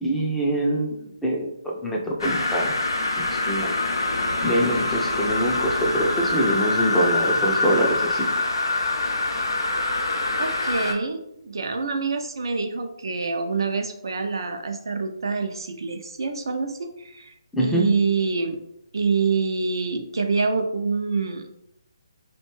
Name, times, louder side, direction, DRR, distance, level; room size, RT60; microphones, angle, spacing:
voice 1, 0.0-2.7 3.2-3.7 4.4-8.3 17.5-17.9, right 1 dB, 5° left, -3 dB, 0.4 m, -24 dB
sound 1, 2.2-10.9, left 2 dB, 70° left, 0.5 m, -25 dB
voice 2, 10.4-17.3 17.6-18.6 18.9-21.4, right 4 dB, 65° right, 6 dB, 0.4 m, -26 dB
2.5 x 2.2 x 3.0 m, 0.76 s
figure-of-eight pair, 145°, 2 cm